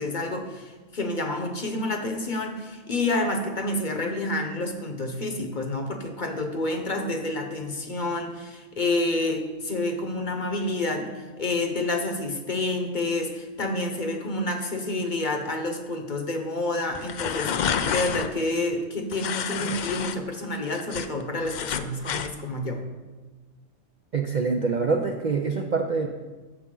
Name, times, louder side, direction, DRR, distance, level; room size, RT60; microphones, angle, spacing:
voice 1, 0.0-22.8, left 2 dB, 40° left, 5 dB, 1.0 m, -29 dB
sound 1, 16.9-18.3 19.1-20.2 20.5-22.3, left 7 dB, 70° left, 0.4 m, -29 dB
voice 2, 24.1-26.1, right 4 dB, 50° right, 3 dB, 0.6 m, -25 dB
12.5 x 7.1 x 3.8 m, 1.3 s
omnidirectional pair, 1.3 m